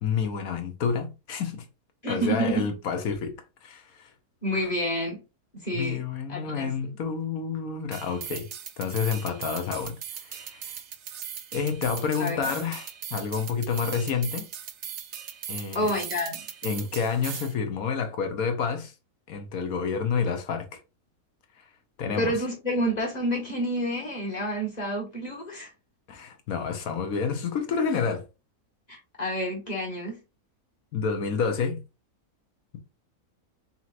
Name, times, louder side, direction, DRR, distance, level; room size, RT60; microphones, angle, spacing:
voice 1, 0.0-1.7 2.1-3.3 3.6-4.1 5.7-8.5 8.8-10.0 10.2-10.8 11.5-14.5 15.5-15.9 16.6-18.9 19.3-20.8 21.6-21.7 22.0-22.3 26.1-28.2 30.9-31.8, left 6 dB, 70° left, 1.3 m, -29 dB
voice 2, 2.0-2.7 4.4-5.2 5.5-6.0 6.3-6.7 12.2-12.4 15.7-16.4 22.2-25.7 28.9-30.2, equal, 25° left, 1.7 m, -29 dB
sound 1, 7.9-17.5, right 9 dB, 65° right, 0.7 m, -39 dB
5.5 x 3.0 x 2.5 m
omnidirectional pair, 1.6 m